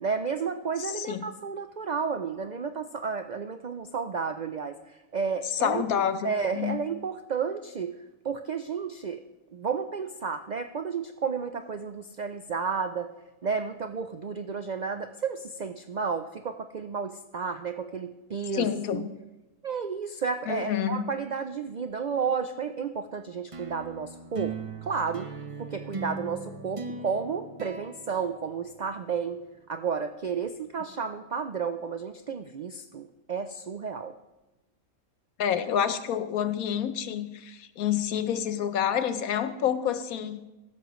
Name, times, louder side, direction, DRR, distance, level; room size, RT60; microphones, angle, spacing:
voice 1, 0.0-8.0 8.2-9.2 9.5-13.1 13.4-19.0 19.6-25.3 25.6-29.4 29.7-34.1, right 5 dB, 90° right, 9 dB, 0.3 m, -32 dB
voice 2, 0.8-1.3 5.6-6.8 18.5-19.1 20.5-21.0 35.4-40.4, left 9 dB, 85° left, 11 dB, 1.2 m, -28 dB
sound 1, 23.5-29.1, right 4 dB, 30° right, 0.7 m, -39 dB
15.0 x 12.5 x 3.1 m, 1.0 s
omnidirectional pair, 1.4 m